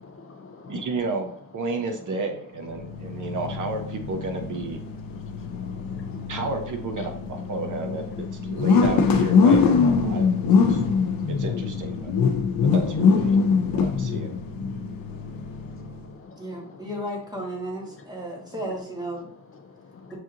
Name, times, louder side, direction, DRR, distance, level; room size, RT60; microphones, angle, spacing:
voice 1, 0.0-0.9 2.8-3.3 4.9-6.4 8.0-8.2 8.5-8.6 10.1-11.3 12.0-12.7 13.7-17.0 17.9-18.6 19.5-20.2, left 4 dB, 40° left, 4 dB, 0.5 m, -47 dB
voice 2, 0.7-4.8 6.3-10.8 11.3-12.1 12.7-13.4 13.6-14.4, right 3 dB, 65° right, 5 dB, 0.7 m, -32 dB
sound 1, 2.7-16.1, left 5 dB, 85° left, 0.6 m, -23 dB
voice 3, 16.4-19.3 20.1-20.2, right 1 dB, 10° right, -2 dB, 1.2 m, -34 dB
6.1 x 2.8 x 2.5 m, 0.62 s
wide cardioid pair, 140°, 33 cm